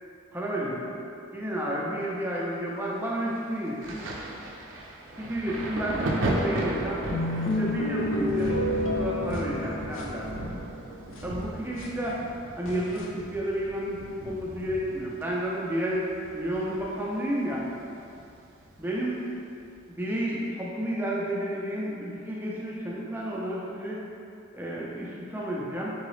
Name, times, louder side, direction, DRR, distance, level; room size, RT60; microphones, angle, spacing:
voice 1, 0.3-0.9 1.3-4.1 5.2-7.0 7.6-8.6 8.9-10.5 11.2-12.2 12.6-16.1 16.3-17.6 18.8-19.1 19.9-24.0 24.5-25.9, equal, 10° right, -5 dB, 0.5 m, -31 dB
Thunder, 3.8-17.2 17.4-18.8 19.6-19.8, right 1 dB, 85° right, 0.5 m, -35 dB
sound 1, 7.1-10.7 11.2-11.3 11.8-11.9 12.6-13.0, left 1 dB, 85° left, 0.5 m, -30 dB
3.9 x 3.6 x 3.1 m, 2.6 s
head